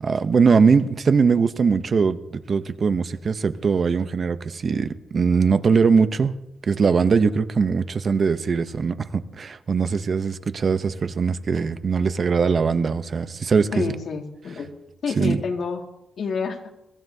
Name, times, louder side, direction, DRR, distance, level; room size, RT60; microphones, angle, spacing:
voice 1, 0.0-6.3 6.7-13.7 15.2-15.4, right 5 dB, 40° right, 11 dB, 0.6 m, -21 dB
voice 2, 13.7-14.7 15.0-15.8 16.2-16.6, left 5 dB, 55° left, 3 dB, 1.9 m, -28 dB
23.0 x 15.5 x 2.7 m, 0.90 s
wide cardioid pair, 140°, 0 cm